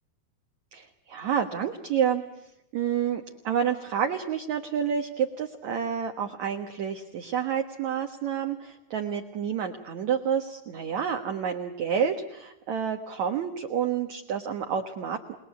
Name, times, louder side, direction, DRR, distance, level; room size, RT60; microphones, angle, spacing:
voice 1, 0.7-2.2 2.7-15.2, right 8 dB, 60° right, 4 dB, 2.2 m, -29 dB
29.5 x 20.5 x 8.3 m, 0.87 s
omnidirectional pair, 4.6 m